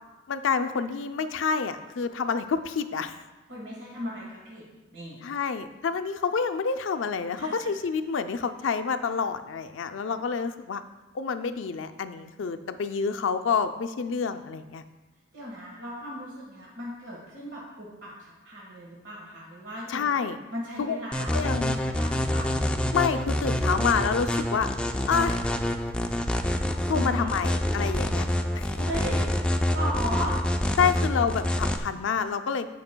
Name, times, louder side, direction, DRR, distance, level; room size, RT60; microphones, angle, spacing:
voice 1, 0.3-3.2 5.2-10.8 11.1-14.8 19.9-20.4 20.8-21.0 21.3-21.7 22.9-24.7 25.1-25.4 26.9-28.3 28.5-28.7 30.8-32.7, left 6 dB, 80° left, 9 dB, 0.4 m, -28 dB
voice 2, 3.5-4.6 4.9-5.2 7.4-7.5 15.3-18.1 18.4-20.1 20.5-22.6 26.9-27.4 28.8-29.2 29.7-30.3, equal, 75° right, -4 dB, 1.5 m, -36 dB
sound 1, 21.1-31.8, left 1 dB, 5° left, 0.3 m, -26 dB
15.5 x 5.3 x 2.2 m, 1.2 s
head